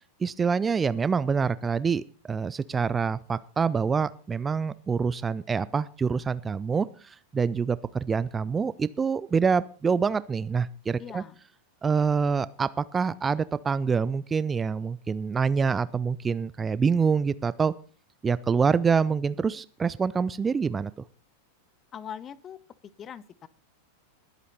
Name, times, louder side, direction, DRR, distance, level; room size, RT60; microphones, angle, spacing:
voice 1, 0.2-11.2 11.8-17.7 18.2-20.9, right 5 dB, 15° right, 17 dB, 0.5 m, -26 dB
voice 2, 11.0-11.4 21.9-22.6 23.0-23.5, left 8 dB, 25° left, 20 dB, 0.8 m, -41 dB
21.0 x 8.2 x 4.2 m, 0.40 s
figure-of-eight pair, 90°, 0 cm